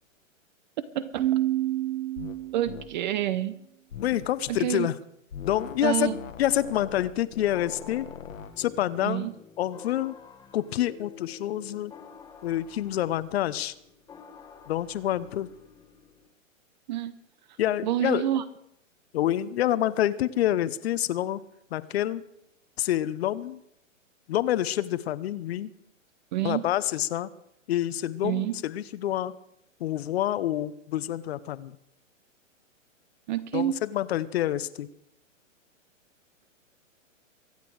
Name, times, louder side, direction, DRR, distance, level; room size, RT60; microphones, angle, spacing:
voice 1, 0.9-1.3 2.5-3.6 4.5-4.9 5.8-6.2 9.0-9.3 16.9-17.2 17.8-18.4 26.3-26.6 28.2-28.6 33.3-33.8, right 12 dB, 35° right, 15 dB, 0.7 m, -28 dB
Keyboard (musical), 1.2-3.0, right 14 dB, 75° right, 0.5 m, -28 dB
sound 1, 2.2-2.4 2.7-2.9 3.9-4.6 5.3-5.8 6.1-8.5, left 7 dB, 80° left, 1.8 m, -41 dB
voice 2, 4.0-4.9 5.4-6.1 6.4-8.1 8.6-9.3 9.6-10.1 10.5-11.9 12.4-13.7 14.7-15.5 17.6-18.3 19.1-21.4 21.7-22.2 22.8-23.6 24.3-25.7 26.4-27.3 27.7-29.3 29.8-31.8 33.5-34.9, left 12 dB, 50° left, 17 dB, 0.9 m, -27 dB
sound 2, 7.5-16.3, left 6 dB, 10° left, 1.3 m, -49 dB
24.0 x 8.4 x 4.8 m, 0.76 s
hypercardioid pair, 140°, 39 cm